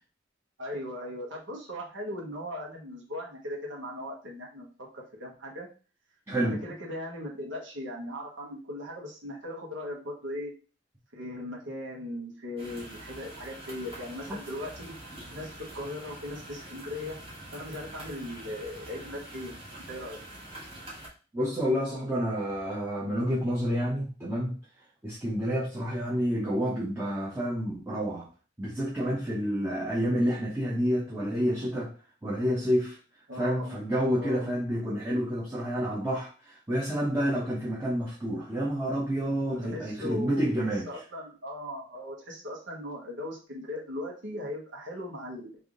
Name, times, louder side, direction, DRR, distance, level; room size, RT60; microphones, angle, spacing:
voice 1, 0.6-4.7 4.9-5.7 6.4-10.5 11.1-14.9 15.3-17.2 17.5-19.6 19.9-20.2 33.3-33.8 34.2-34.5 39.5-40.6 40.8-45.6, left 1 dB, 75° right, -2 dB, 1.1 m, -38 dB
voice 2, 6.3-6.6 14.3-14.4 21.3-24.6 25.0-28.3 28.6-31.9 32.2-33.0 33.4-40.8, equal, 15° right, -6 dB, 0.7 m, -29 dB
sound 1, 12.6-21.1, right 1 dB, 30° right, 1.4 m, -45 dB
3.4 x 2.6 x 3.6 m, 0.36 s
head